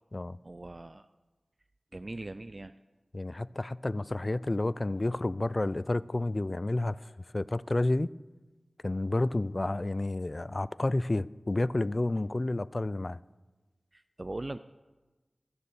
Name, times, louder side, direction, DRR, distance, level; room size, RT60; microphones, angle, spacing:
voice 1, 0.4-1.1 1.9-2.7 13.9-14.6, right 2 dB, 45° right, 0.4 m, -40 dB
voice 2, 3.1-8.1 8.8-13.2, left 2 dB, 40° left, 0.3 m, -30 dB
15.0 x 6.9 x 6.9 m
wide cardioid pair, 45°, 0 cm